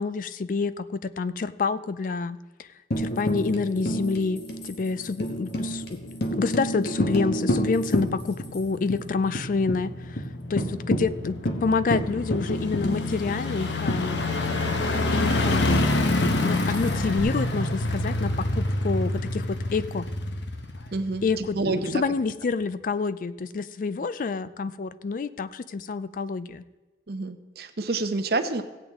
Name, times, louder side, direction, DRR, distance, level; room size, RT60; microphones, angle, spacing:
voice 1, 0.0-2.4 3.0-10.2 10.5-14.2 15.1-15.9 16.1-20.1 21.2-26.6, left 4 dB, 50° left, 15 dB, 0.4 m, -28 dB
Tambourine, 2.9-8.6 8.9-9.0 9.3-9.8 10.2-10.3 10.6-14.7 16.2-17.2, equal, 65° left, 1.2 m, -30 dB
sound 1, 5.0-21.6 21.9-22.0, left 2 dB, 90° left, 1.0 m, -28 dB
voice 2, 10.6-11.0 20.9-22.0 27.1-28.6, right 3 dB, 60° right, 8 dB, 0.8 m, -29 dB
16.0 x 8.8 x 3.6 m, 1.2 s
head